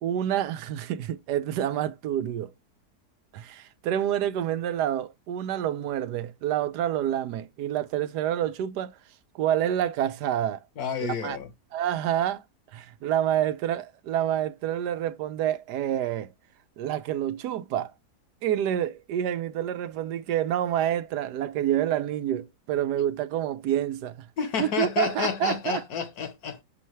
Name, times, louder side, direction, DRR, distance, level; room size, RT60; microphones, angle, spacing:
voice 1, 0.0-2.5 3.3-9.0 9.3-10.6 11.0-11.4 11.7-12.4 12.7-16.3 16.8-17.9 18.4-24.3 24.6-25.8, right 11 dB, 75° right, 1.2 m, -28 dB
voice 2, 10.8-11.5 24.4-26.6, left 7 dB, 65° left, 1.5 m, -30 dB
6.3 x 5.6 x 3.1 m
omnidirectional pair, 1.8 m